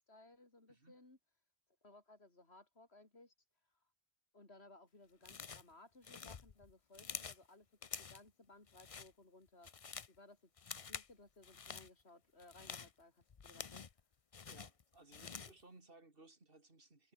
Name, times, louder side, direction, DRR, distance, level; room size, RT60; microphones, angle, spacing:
voice 1, 0.1-1.2 1.8-3.3 4.3-13.8, left 2 dB, 75° left, 4.6 m, -62 dB
voice 2, 0.7-1.0 14.5-17.1, right 2 dB, 55° right, 3.2 m, -62 dB
sound 1, 5.2-5.7 6.0-7.4 7.8-8.3 8.7-9.1 9.5-10.2 10.6-11.1 11.4-11.9 12.4-14.0 14.3-15.6, left 6 dB, 35° left, 0.7 m, -48 dB
omnidirectional pair, 1.1 m